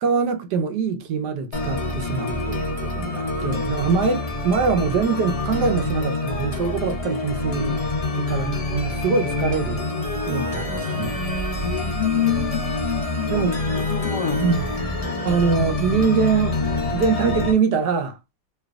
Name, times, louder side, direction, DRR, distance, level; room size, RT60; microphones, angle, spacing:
voice 1, 0.0-7.8 8.1-9.9 10.2-11.2 13.3-13.6 14.4-14.7 15.2-16.6 16.9-18.2, right 5 dB, 80° right, 1.3 m, -23 dB
sound 1, 1.5-17.5, left 2 dB, 45° left, 0.4 m, -26 dB
voice 2, 11.6-13.3 13.7-14.4, left 9 dB, 65° left, 0.9 m, -26 dB
3.3 x 3.1 x 2.3 m
omnidirectional pair, 1.8 m